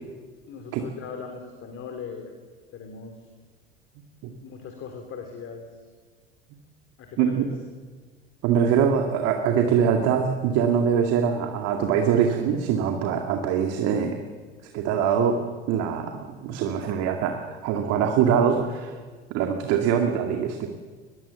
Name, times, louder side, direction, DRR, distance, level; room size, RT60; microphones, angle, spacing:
voice 1, 0.5-2.3 2.7-3.3 4.4-5.8 7.0-7.5, left 6 dB, 40° left, 4 dB, 3.8 m, -39 dB
voice 2, 8.4-14.2 14.7-15.4 15.7-19.0 19.3-20.7, right 7 dB, 50° right, 4 dB, 2.3 m, -23 dB
23.0 x 21.0 x 7.1 m, 1.5 s
figure-of-eight pair, 70°, 32 cm